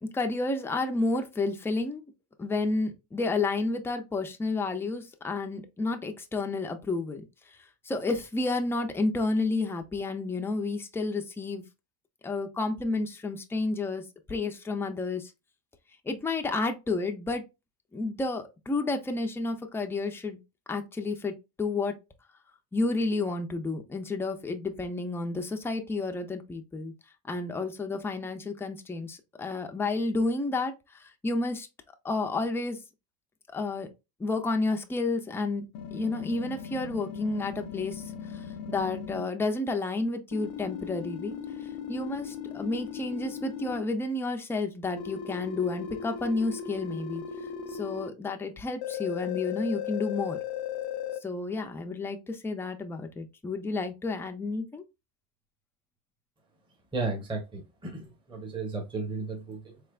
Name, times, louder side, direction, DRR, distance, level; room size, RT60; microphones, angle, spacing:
voice 1, 0.0-2.1 2.4-7.6 7.8-11.6 12.2-14.0 14.3-15.3 16.1-17.4 17.9-20.4 20.7-21.9 22.7-26.9 27.3-31.7 32.0-32.8 33.5-33.9 34.2-35.7 35.9-38.0 38.3-41.4 41.9-47.2 47.7-50.4 51.2-54.8, left 3 dB, 5° left, 0.3 m, -31 dB
sound 1, 35.7-39.2 40.3-43.8 45.0-48.1 48.8-51.2, left 8 dB, 75° left, 0.7 m, -37 dB
voice 2, 56.9-59.8, right 3 dB, 10° right, 0.8 m, -34 dB
4.1 x 3.3 x 2.3 m
cardioid pair, 135°, 39 cm